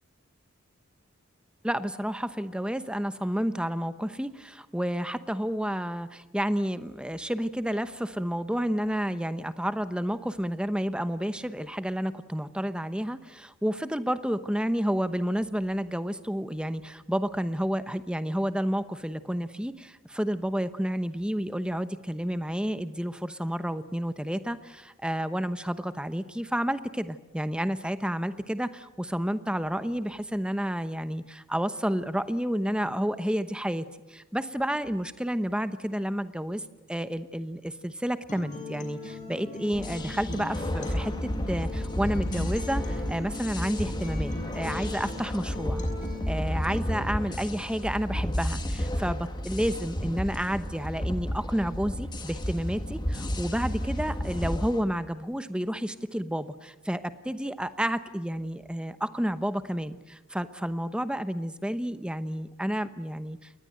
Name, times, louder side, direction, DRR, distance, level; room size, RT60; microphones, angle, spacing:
voice 1, 1.6-36.6 36.9-45.8 46.3-63.6, equal, 5° right, 11 dB, 0.9 m, -30 dB
Acoustic guitar, 38.3-46.3, left 3 dB, 40° left, 6.6 m, -39 dB
sound 1, 39.7-54.8, equal, 20° left, 1.8 m, -32 dB
28.0 x 21.0 x 7.8 m, 1.0 s
head